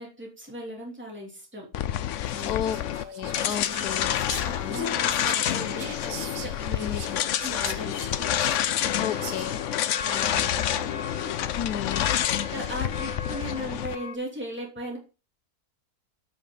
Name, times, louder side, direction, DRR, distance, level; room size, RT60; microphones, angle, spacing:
voice 1, 0.0-1.7 2.3-2.5 3.6-4.0 4.4-8.3 9.2-9.5 10.0-11.0 11.8-15.0, equal, 5° right, 2.9 m, -38 dB
sound 1, 1.7-14.0, left 11 dB, 65° left, 0.8 m, -28 dB
Whispering, 2.2-9.8, right 8 dB, 80° right, 1.5 m, -43 dB
voice 2, 2.4-4.8 6.8-7.2 9.0-9.6 11.5-12.1, left 9 dB, 80° left, 1.1 m, -34 dB
sound 2, 8.9-14.2, left 4 dB, 35° left, 0.5 m, -40 dB
8.3 x 7.0 x 3.9 m
omnidirectional pair, 1.7 m